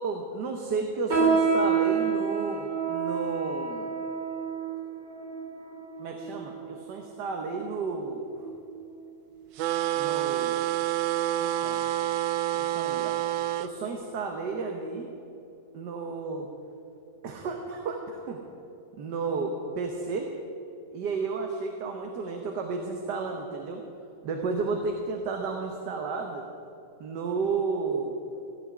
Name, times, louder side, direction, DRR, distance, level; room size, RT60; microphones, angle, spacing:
voice 1, 0.0-3.9 6.0-8.5 10.0-10.6 11.4-11.9 12.5-13.2 13.6-15.1 15.7-16.5 17.2-18.4 19.0-20.3 20.9-23.8 24.2-26.5 27.0-28.2, right 4 dB, 70° right, 3 dB, 1.6 m, -32 dB
sound 1, 1.1-6.8 7.4-7.6 8.3-8.6 9.0-9.2 9.9-10.0, right 5 dB, 55° right, 3.0 m, -28 dB
sound 2, 9.6-13.7, right 13 dB, 90° right, 1.3 m, -28 dB
16.0 x 5.9 x 9.6 m, 2.7 s
omnidirectional pair, 1.9 m